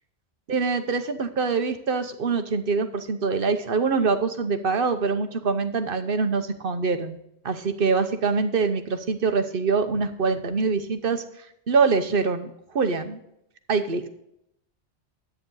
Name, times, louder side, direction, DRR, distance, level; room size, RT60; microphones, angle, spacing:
voice 1, 0.5-7.2 7.4-11.2 11.7-13.2 13.7-14.1, right 4 dB, 55° right, 9 dB, 1.0 m, -24 dB
10.5 x 8.8 x 3.9 m, 0.76 s
omnidirectional pair, 1.2 m